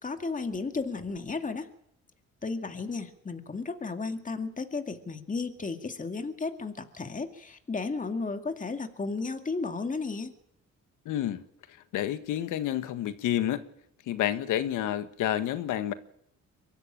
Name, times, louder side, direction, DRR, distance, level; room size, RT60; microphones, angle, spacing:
voice 1, 0.0-1.7 2.4-10.3, left 4 dB, 25° left, 2.3 m, -34 dB
voice 2, 11.0-11.4 11.9-13.6 14.1-15.9, left 11 dB, 90° left, 1.7 m, -29 dB
23.5 x 13.5 x 9.0 m
cardioid pair, 90°, 30 cm